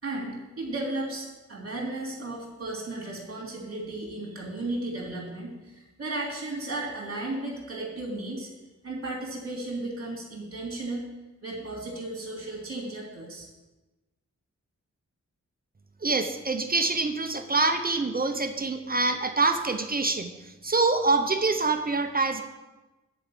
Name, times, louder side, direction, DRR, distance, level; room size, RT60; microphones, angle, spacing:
voice 1, 0.0-8.5 8.8-11.1 11.4-13.5, right 2 dB, 50° right, -2 dB, 3.1 m, -34 dB
voice 2, 16.0-20.3 20.6-22.4, right 3 dB, 30° right, 6 dB, 0.7 m, -25 dB
10.0 x 5.0 x 7.2 m, 1.1 s
wide cardioid pair, 130°, 29 cm